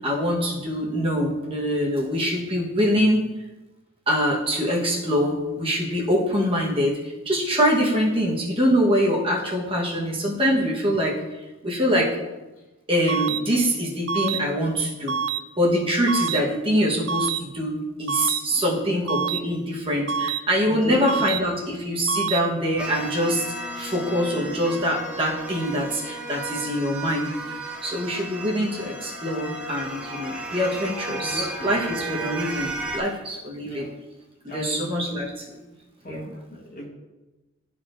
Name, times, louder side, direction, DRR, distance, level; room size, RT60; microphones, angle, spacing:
voice 1, 0.0-3.2 4.1-7.0 7.2-11.2 11.6-12.1 12.9-15.1 15.6-23.5 23.7-27.3 27.8-33.9 34.5-35.4 36.1-36.2, equal, 25° right, -3 dB, 1.1 m, -24 dB
sound 1, 13.1-13.4 14.1-14.4 15.1-15.4 16.1-16.4 17.1-17.4 18.1-18.4 19.1-19.4 20.1-20.4 21.1-21.4 22.1-22.4, right 6 dB, 60° right, 0.3 m, -26 dB
voice 2, 20.7-21.0 31.1-31.7 32.2-32.3 33.6-33.9 34.5-34.9 36.0-36.9, left 1 dB, 40° left, -2 dB, 1.3 m, -34 dB
sound 2, 22.8-33.0, right 2 dB, 5° right, 0.6 m, -34 dB
12.5 x 4.2 x 2.5 m, 1.1 s
head